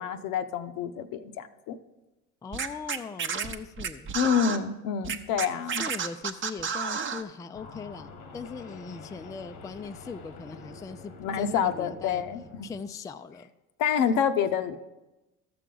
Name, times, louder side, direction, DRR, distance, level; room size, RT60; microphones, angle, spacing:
voice 1, 0.0-1.8 4.1-5.8 11.2-12.7 13.8-14.8, left 7 dB, 70° left, 10 dB, 0.7 m, -27 dB
voice 2, 2.4-4.1 5.8-8.1 8.3-12.2 12.6-13.5, left 5 dB, 10° left, 9 dB, 0.3 m, -40 dB
Scratching (performance technique), 2.5-4.6 5.0-7.2, right 6 dB, 35° right, 0.7 m, -31 dB
sound 1, 7.5-12.8, left 4 dB, 90° left, 1.3 m, -46 dB
13.0 x 6.9 x 3.8 m, 1.1 s
supercardioid pair, 95°, 34 cm